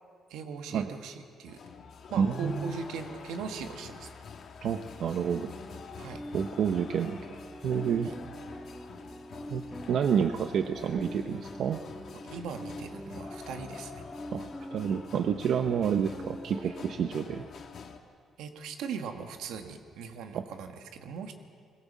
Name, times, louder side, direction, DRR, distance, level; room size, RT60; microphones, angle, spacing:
voice 1, 0.3-1.6 2.1-4.1 6.0-6.3 8.0-8.1 12.2-14.0 16.6-16.7 18.4-21.4, right 5 dB, 85° right, 6 dB, 1.6 m, -39 dB
sound 1, 1.5-18.0, left 5 dB, 60° left, 1.9 m, -46 dB
voice 2, 2.2-2.7 4.6-5.5 6.3-7.2 7.6-8.1 9.5-11.8 14.3-17.5 20.3-20.4, right 7 dB, 70° right, 8 dB, 0.8 m, -29 dB
sound 2, 5.2-17.5, equal, ahead, 1.0 m, -44 dB
21.0 x 17.0 x 7.4 m, 2.1 s
cardioid pair, 90°, 0 cm